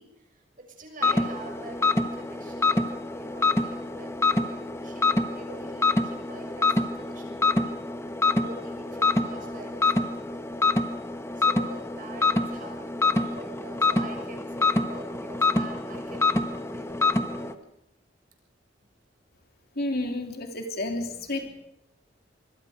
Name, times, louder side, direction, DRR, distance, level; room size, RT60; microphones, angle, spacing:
voice 1, 0.0-7.8 8.2-10.7 11.4-17.6, right 1 dB, 50° right, 3 dB, 6.5 m, -45 dB
sound 1, 1.0-17.5, left 3 dB, 15° left, 1.2 m, -26 dB
voice 2, 19.8-21.5, left 1 dB, 55° left, 4 dB, 3.3 m, -30 dB
25.5 x 22.0 x 5.2 m, 0.85 s
head